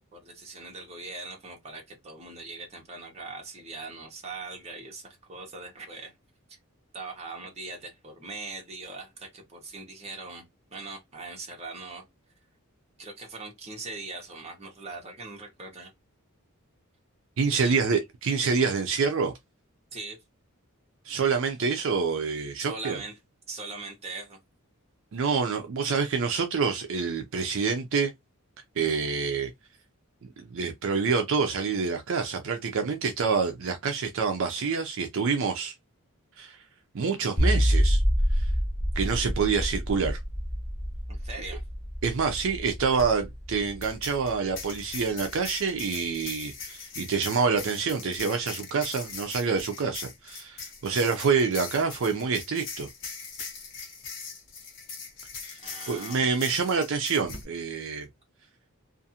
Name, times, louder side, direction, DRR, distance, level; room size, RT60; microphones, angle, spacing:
voice 1, 0.1-6.1 6.9-12.1 13.0-15.9 17.6-18.1 19.9-20.2 22.6-23.1 23.5-24.4 41.1-41.6 55.6-56.6, right 3 dB, 30° right, 0.8 m, -41 dB
voice 2, 17.4-19.3 21.0-23.0 25.1-28.1 28.8-29.5 30.2-35.7 36.4-36.6 36.9-38.0 38.3-38.5 39.0-40.2 42.0-52.9 55.5-55.6 55.9-58.1, right 5 dB, 60° right, 0.4 m, -27 dB
sound 1, 37.4-44.6, equal, 10° left, 0.4 m, -27 dB
sound 2, 43.0-43.1 43.8-57.4, left 5 dB, 60° left, 1.0 m, -41 dB
2.5 x 2.4 x 2.7 m
head